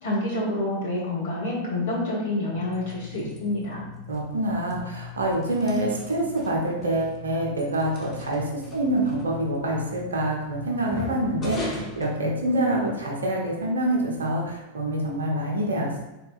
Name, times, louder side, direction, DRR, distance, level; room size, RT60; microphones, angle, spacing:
voice 1, 0.0-3.8, left 1 dB, 60° left, -5 dB, 1.1 m, -28 dB
sound 1, 2.5-13.0, left 4 dB, 25° left, 0.9 m, -40 dB
voice 2, 4.1-16.0, right 1 dB, 70° right, -1 dB, 0.8 m, -26 dB
4.2 x 3.8 x 2.4 m, 1.0 s
figure-of-eight pair, 90°, 0 cm